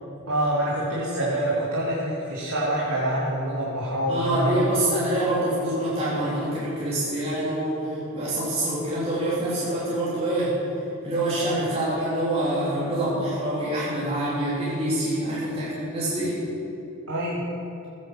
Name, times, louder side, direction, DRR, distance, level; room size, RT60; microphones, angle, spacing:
voice 1, 0.3-4.7 17.1-17.5, right 1 dB, 90° right, -5 dB, 2.4 m, -26 dB
voice 2, 4.1-10.5 11.0-16.4, right 1 dB, 25° right, -9 dB, 3.4 m, -26 dB
15.5 x 9.0 x 7.6 m, 3.0 s
head